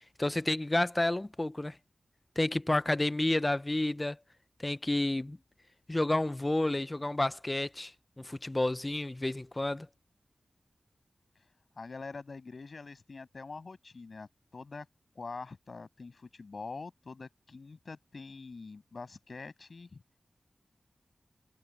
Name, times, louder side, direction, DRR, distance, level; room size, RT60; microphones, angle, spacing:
voice 1, 0.2-1.8 2.4-4.2 4.6-5.4 5.9-9.9, left 1 dB, 25° left, 0.5 m, -30 dB
voice 2, 11.8-14.9 15.2-20.0, left 4 dB, 60° left, 6.9 m, -45 dB
cardioid pair, 50°, 0 cm